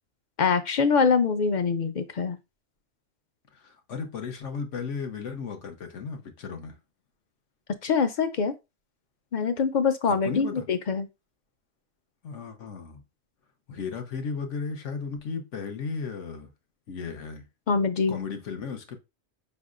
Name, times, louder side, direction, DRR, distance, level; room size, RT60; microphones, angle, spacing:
voice 1, 0.4-2.4 7.8-8.5 9.3-11.1 17.7-18.2, left 5 dB, 55° left, 0.5 m, -24 dB
voice 2, 3.5-6.7 10.1-10.6 12.2-13.0 13.7-16.5 16.9-17.4 18.1-19.0, left 5 dB, 80° left, 1.3 m, -35 dB
5.3 x 3.5 x 2.4 m
omnidirectional pair, 1.2 m